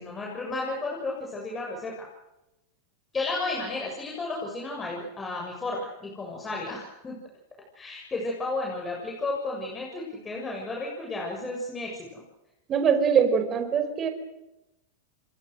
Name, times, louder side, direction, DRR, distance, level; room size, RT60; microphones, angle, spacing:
voice 1, 0.0-2.1 3.1-7.2 7.7-12.2, left 2 dB, 20° left, -1 dB, 7.1 m, -33 dB
voice 2, 12.7-14.1, right 7 dB, 30° right, 8 dB, 5.1 m, -22 dB
29.5 x 23.0 x 6.4 m, 0.94 s
hypercardioid pair, 120°, 0 cm